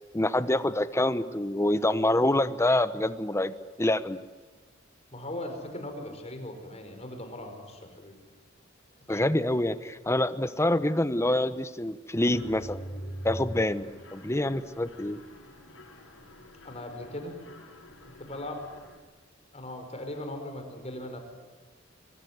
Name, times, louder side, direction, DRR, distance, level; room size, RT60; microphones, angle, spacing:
voice 1, 0.1-3.5 3.8-4.2 9.1-12.8 13.2-15.2, left 1 dB, 15° left, 13 dB, 1.0 m, -26 dB
voice 2, 5.1-8.2 9.1-9.3 16.6-17.4 18.2-18.7 19.5-21.2, left 1 dB, 35° left, 5 dB, 4.8 m, -39 dB
Mechanisms, 12.3-19.0, equal, 85° left, 6.1 m, -44 dB
24.0 x 24.0 x 9.5 m, 1.3 s
head